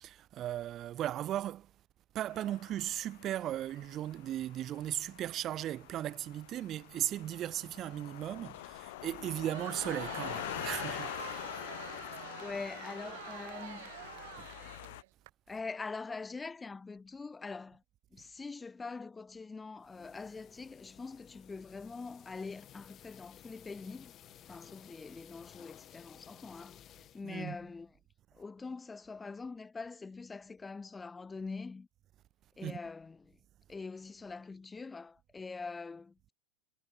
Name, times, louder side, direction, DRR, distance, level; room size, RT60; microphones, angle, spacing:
voice 1, 0.0-1.7 2.1-11.6 14.4-14.5 27.2-27.6 32.6-32.8, right 12 dB, 35° right, 1.1 m, -37 dB
sound 1, 2.3-15.0, left 19 dB, 70° left, 0.6 m, -45 dB
Crowd, 9.3-15.3, right 20 dB, 65° right, 1.2 m, -47 dB
voice 2, 12.2-13.9 15.5-17.8 18.1-24.1 24.5-26.8 27.1-28.0 28.3-31.9 32.6-33.4 33.7-36.3, left 4 dB, 15° left, 2.0 m, -44 dB
sound 2, 19.8-27.2, left 11 dB, 30° left, 1.3 m, -56 dB
supercardioid pair, 135°, 0 cm